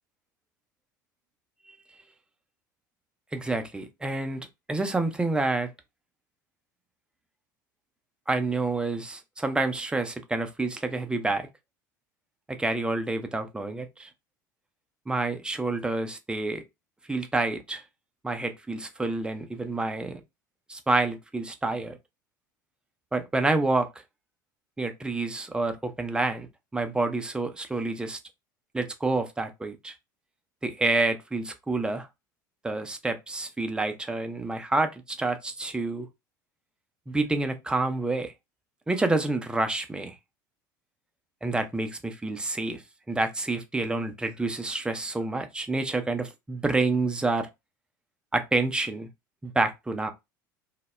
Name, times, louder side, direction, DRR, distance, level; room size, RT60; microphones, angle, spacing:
voice 1, 3.3-5.7 8.3-11.5 12.5-14.1 15.1-16.6 17.1-17.8 18.2-20.2 20.7-22.0 23.1-23.9 24.8-26.5 26.7-28.2 28.7-29.9 30.6-32.1 32.6-36.1 37.1-38.3 38.9-40.2 41.4-42.8 43.1-47.5 48.3-49.1 49.4-50.1, right 2 dB, 10° right, 0.4 m, -28 dB
2.1 x 2.0 x 3.1 m
figure-of-eight pair, 70°, 11 cm